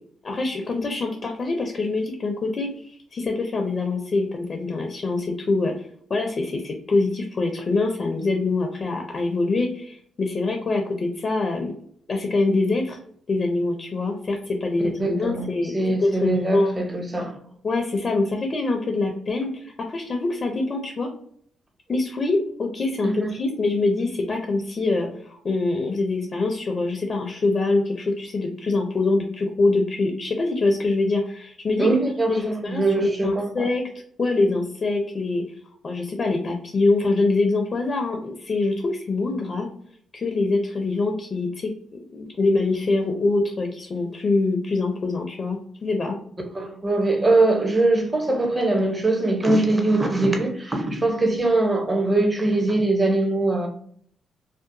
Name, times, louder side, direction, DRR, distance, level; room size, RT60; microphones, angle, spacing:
voice 1, 0.2-11.7 12.1-13.0 13.3-15.7 16.0-16.7 17.6-21.1 21.9-31.9 32.3-33.8 34.2-35.4 35.8-39.7 40.1-46.2, left 3 dB, 45° left, 0.5 m, -24 dB
voice 2, 15.0-17.4 23.0-23.3 31.8-33.7 46.5-53.7, right 2 dB, 25° right, 0.8 m, -22 dB
2.8 x 2.1 x 2.6 m
supercardioid pair, 60°, 0 cm